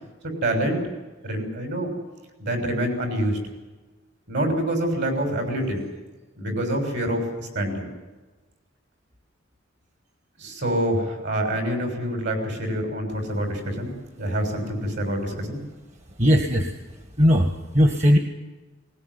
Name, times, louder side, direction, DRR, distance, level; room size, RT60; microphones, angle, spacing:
voice 1, 0.2-0.8 1.2-1.9 2.4-3.4 4.3-5.8 6.4-7.9 10.4-15.6, right 1 dB, 65° right, 5 dB, 6.7 m, -26 dB
voice 2, 16.2-18.2, equal, 35° right, 5 dB, 1.6 m, -19 dB
20.0 x 19.5 x 9.8 m, 1.2 s
head